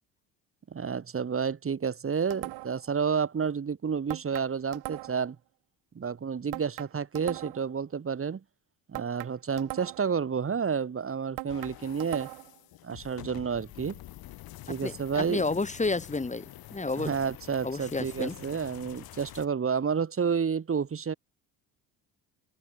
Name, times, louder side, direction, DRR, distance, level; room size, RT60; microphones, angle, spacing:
voice 1, 0.7-5.4 6.0-8.4 8.9-12.3 12.8-14.0 14.7-15.5 17.0-21.1, right 6 dB, 35° right, 3.4 m, -30 dB
sound 1, 2.3-2.9 4.1-5.3 6.5-7.7 8.9-10.2 11.4-12.6, right 24 dB, 85° right, 7.8 m, -40 dB
sound 2, 11.5-19.5, left 15 dB, 70° left, 6.4 m, -47 dB
voice 2, 14.7-17.2 17.6-18.3, left 3 dB, 20° left, 4.0 m, -31 dB
supercardioid pair, 80°, 37 cm